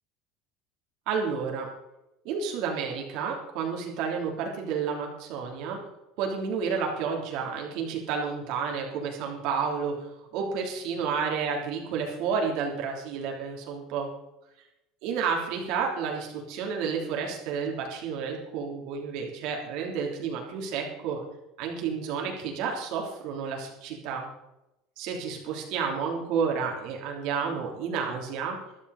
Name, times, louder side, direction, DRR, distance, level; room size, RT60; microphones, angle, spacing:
voice 1, 1.1-1.7 2.2-5.8 6.2-14.1 15.0-21.2 21.6-24.3 25.0-28.6, right 6 dB, 55° right, 1 dB, 3.3 m, -31 dB
13.5 x 13.0 x 4.2 m, 0.92 s
cardioid pair, 165°, 0 cm